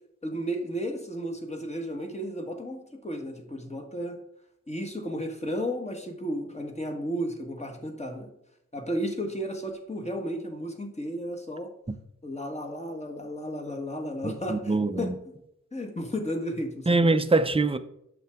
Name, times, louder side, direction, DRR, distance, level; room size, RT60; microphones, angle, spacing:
voice 1, 0.2-4.2 4.7-8.3 8.7-11.7 12.2-15.1 15.7-16.9, equal, 20° left, 1.6 m, -33 dB
voice 2, 14.2-15.2 16.9-17.8, right 3 dB, 20° right, 0.6 m, -24 dB
8.5 x 6.9 x 3.6 m
wide cardioid pair, 130°, 29 cm